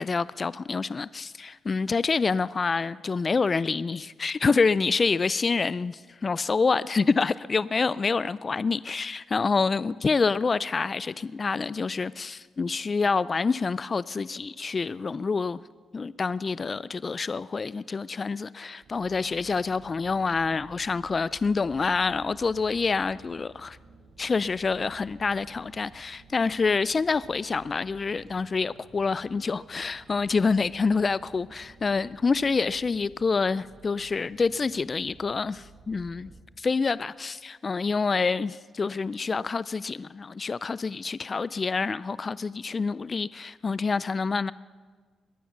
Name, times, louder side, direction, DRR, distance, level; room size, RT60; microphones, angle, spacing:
voice 1, 0.0-15.6 15.9-23.8 24.2-44.5, left 4 dB, 40° left, 0.3 m, -27 dB
sound 1, 18.8-36.4, right 3 dB, 65° right, 3.7 m, -53 dB
22.0 x 9.3 x 6.0 m
supercardioid pair, 55°, 0 cm